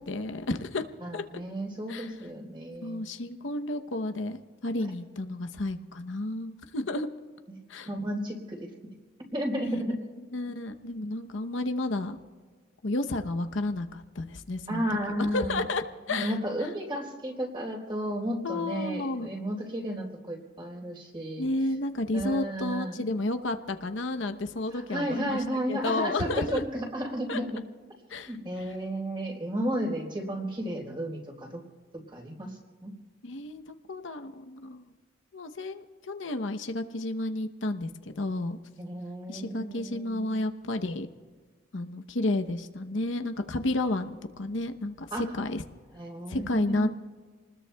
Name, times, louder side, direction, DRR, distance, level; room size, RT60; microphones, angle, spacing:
voice 1, 0.1-0.8 1.1-1.2 1.9-2.1 2.8-7.1 7.7-7.9 9.6-9.9 10.3-12.2 12.8-14.8 15.3-16.3 18.4-19.3 21.4-25.4 25.7-26.6 27.3-27.4 28.1-28.7 33.2-34.8 35.3-37.9 38.2-38.6 39.3-41.1 41.7-45.6 46.3-46.9, left 2 dB, 80° left, 7 dB, 0.8 m, -31 dB
voice 2, 1.0-3.1 7.9-8.7 9.3-10.0 14.7-15.6 16.1-21.5 22.1-23.1 24.7-27.6 28.3-31.6 32.1-32.9 38.8-40.5 45.1-45.3 45.9-46.9, equal, 25° right, 0 dB, 3.8 m, -33 dB
28.5 x 20.0 x 2.3 m, 1.5 s
head